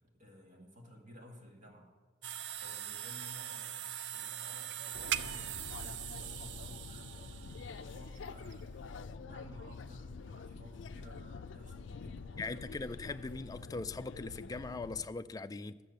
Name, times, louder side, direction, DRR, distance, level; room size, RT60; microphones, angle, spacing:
voice 1, 0.0-1.9 2.3-8.9 9.2-12.8, equal, 40° right, 2.0 m, -55 dB
sound 1, 2.2-9.0, right 10 dB, 70° right, 0.4 m, -42 dB
sound 2, 4.9-15.1, left 4 dB, 80° left, 0.4 m, -47 dB
voice 2, 12.4-15.8, left 3 dB, 20° left, 0.3 m, -40 dB
12.0 x 7.5 x 6.6 m
head